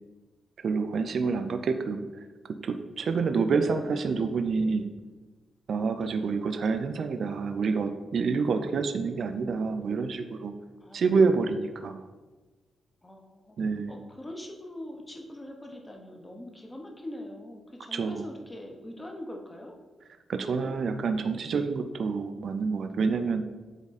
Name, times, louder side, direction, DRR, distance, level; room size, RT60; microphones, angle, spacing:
voice 1, 0.6-2.1 2.6-4.9 5.7-10.5 10.9-12.0 13.6-13.9 17.9-18.3 20.3-23.4, right 4 dB, 50° right, 8 dB, 0.4 m, -27 dB
voice 2, 3.1-4.5 6.0-6.3 9.1-9.3 10.8-11.0 13.0-13.6 13.9-19.7, left 1 dB, 15° left, 2 dB, 0.9 m, -43 dB
8.3 x 3.6 x 4.1 m, 1.3 s
wide cardioid pair, 160°, 0 cm